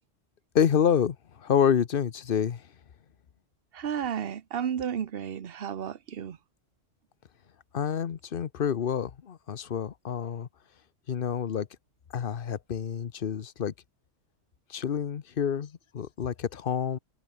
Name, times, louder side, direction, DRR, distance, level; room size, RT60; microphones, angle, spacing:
voice 1, 0.5-2.6 7.7-10.5 11.1-11.7 12.1-13.7 14.7-17.0, left 8 dB, 50° left, 1.0 m, -28 dB
voice 2, 3.7-6.4, right 8 dB, 55° right, 1.1 m, -32 dB
omnidirectional pair, 1.3 m